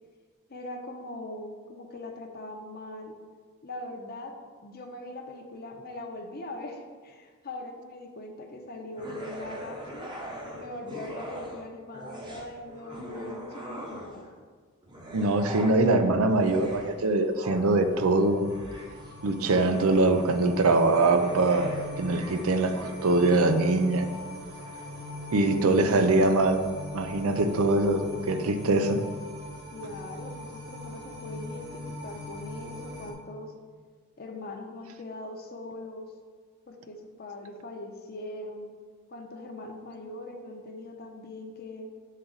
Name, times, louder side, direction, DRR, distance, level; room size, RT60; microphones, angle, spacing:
voice 1, 0.5-3.2 3.6-4.3 4.6-10.1 10.6-14.3 29.7-33.5 34.2-36.1 36.7-38.7 39.1-41.9, left 2 dB, 45° left, 3 dB, 0.7 m, -41 dB
sound 1, 9.0-11.6 11.9-14.3 14.8-23.4, equal, 20° right, 0.8 m, -42 dB
voice 2, 15.1-18.5 19.2-21.7 22.0-24.1 25.3-26.6 26.9-29.0, right 2 dB, 70° right, 8 dB, 0.5 m, -23 dB
sound 2, 16.9-33.1, left 2 dB, 50° right, 0.9 m, -41 dB
7.4 x 3.9 x 3.9 m, 1.5 s
head